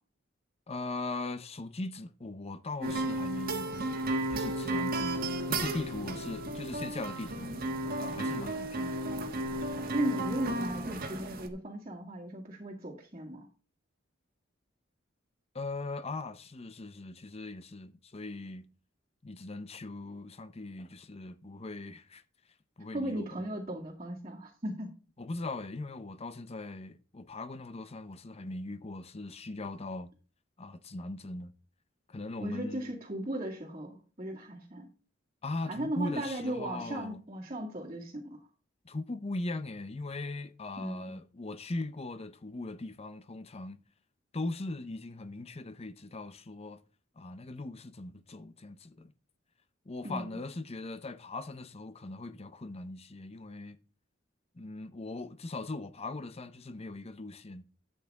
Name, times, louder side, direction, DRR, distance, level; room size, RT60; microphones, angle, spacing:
voice 1, 0.7-4.0 4.3-5.2 5.5-7.6 8.0-9.0 15.5-18.7 19.2-22.2 22.8-23.4 25.2-30.1 30.6-31.5 32.1-32.9 35.4-37.2 38.8-43.8 44.3-46.8 47.2-49.1 49.9-53.8 54.6-57.6, left 2 dB, 30° left, 0.7 m, -40 dB
sound 1, 2.8-11.5, right 1 dB, 50° right, 1.4 m, -33 dB
voice 2, 9.9-13.5 22.9-24.9 32.4-34.9 35.7-38.5 40.8-41.2 50.0-50.5, right 1 dB, 35° right, 2.0 m, -36 dB
12.5 x 7.9 x 3.6 m
head